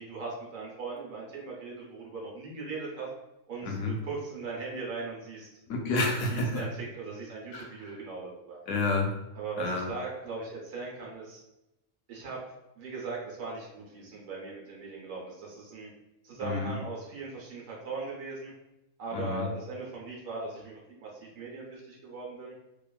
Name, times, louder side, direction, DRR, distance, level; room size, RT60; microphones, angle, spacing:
voice 1, 0.0-3.1 3.5-5.5 6.2-8.6 9.3-11.4 12.1-12.4 12.8-15.9 16.2-18.5 19.0-22.5, right 4 dB, 75° right, -3 dB, 1.2 m, -39 dB
voice 2, 3.6-3.9 5.7-6.7 7.5-7.9 8.7-9.1 9.6-9.9 16.4-16.7 19.1-19.5, left 3 dB, 80° left, 1 dB, 1.0 m, -30 dB
2.9 x 2.3 x 2.3 m, 0.91 s
omnidirectional pair, 1.4 m